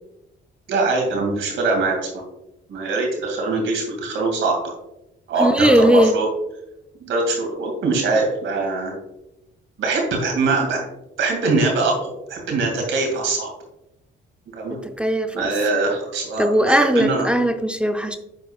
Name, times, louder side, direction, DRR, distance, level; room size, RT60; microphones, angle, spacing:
voice 1, 0.7-2.0 2.7-4.6 5.3-6.3 7.0-8.9 9.8-10.8 11.2-13.5 14.5-14.8 15.3-17.3, right 3 dB, 75° right, 0 dB, 2.4 m, -22 dB
voice 2, 5.4-6.2 14.8-15.5 16.4-18.2, equal, 5° right, 7 dB, 0.5 m, -18 dB
9.9 x 4.7 x 2.4 m, 0.88 s
cardioid pair, 90°, 20 cm